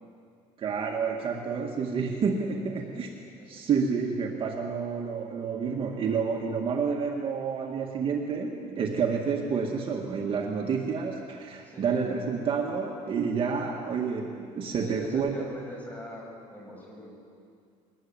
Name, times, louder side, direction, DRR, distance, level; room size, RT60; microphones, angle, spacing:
voice 1, 0.6-3.1 3.5-15.5, right 5 dB, 40° right, 1 dB, 1.9 m, -29 dB
voice 2, 2.8-3.7 11.6-12.0 13.4-13.8 14.7-17.1, left 1 dB, 10° left, -2 dB, 7.0 m, -43 dB
22.5 x 19.5 x 8.9 m, 2.3 s
cardioid pair, 150°, 14 cm